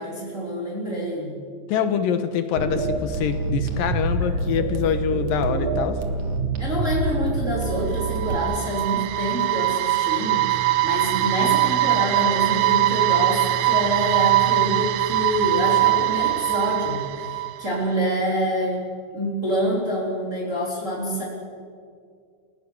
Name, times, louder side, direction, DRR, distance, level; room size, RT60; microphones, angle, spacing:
voice 1, 0.0-1.3 6.6-18.8 19.1-21.2, equal, 20° right, -4 dB, 4.1 m, -26 dB
voice 2, 1.7-6.0, left 8 dB, 70° left, 9 dB, 2.7 m, -25 dB
sound 1, 2.6-8.4, right 3 dB, 50° right, 2.8 m, -26 dB
sound 2, 7.7-17.8, right 16 dB, 75° right, 2.2 m, -22 dB
29.5 x 17.0 x 7.1 m, 2.2 s
omnidirectional pair, 4.3 m